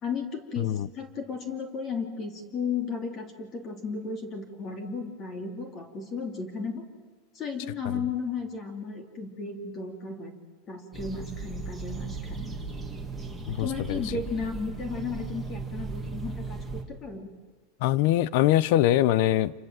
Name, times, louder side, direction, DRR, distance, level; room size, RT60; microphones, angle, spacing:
voice 1, 0.0-6.8 7.3-10.3 10.7-12.6 13.6-17.3, left 5 dB, 25° left, 2.9 m, -34 dB
sound 1, 10.9-16.8, right 4 dB, ahead, 2.3 m, -37 dB
voice 2, 13.5-14.0 17.8-19.5, left 13 dB, 50° left, 0.8 m, -23 dB
28.5 x 25.0 x 7.6 m
supercardioid pair, 175°, 0 cm